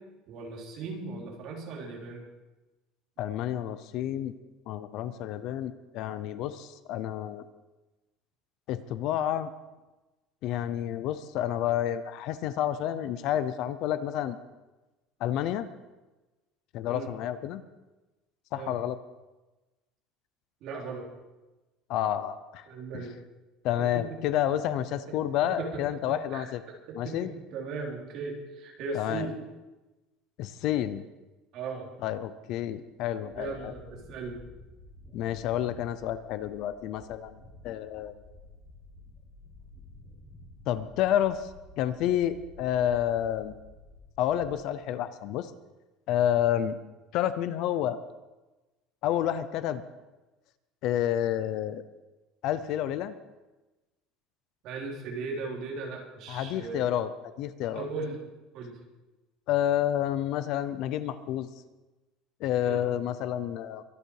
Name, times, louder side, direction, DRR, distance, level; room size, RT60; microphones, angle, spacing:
voice 1, 0.3-2.2 16.9-17.1 18.6-18.7 20.6-21.1 22.7-23.1 23.8-24.0 25.6-25.8 26.1-26.4 26.9-29.4 31.5-31.9 33.3-34.4 54.6-56.9 57.7-58.2 58.5-58.8 62.6-62.8, right 4 dB, 45° right, -1 dB, 3.5 m, -37 dB
voice 2, 3.2-4.3 4.7-7.4 8.7-9.5 10.4-14.4 15.2-15.7 16.7-17.6 18.5-19.0 21.9-22.6 22.9-23.0 23.6-26.6 27.0-27.3 28.9-29.3 30.4-31.0 32.0-33.7 35.1-37.4 37.6-38.1 40.7-43.5 44.2-45.5 46.1-46.8 47.1-48.0 49.0-49.8 50.8-51.8 52.4-53.1 56.3-57.1 57.4-57.9 59.5-61.5 62.4-63.8, left 11 dB, 45° left, 13 dB, 0.7 m, -29 dB
sound 1, 33.3-44.5, left 1 dB, 5° right, 3.4 m, -52 dB
23.5 x 9.6 x 4.8 m, 1.1 s
cardioid pair, 180°, 0 cm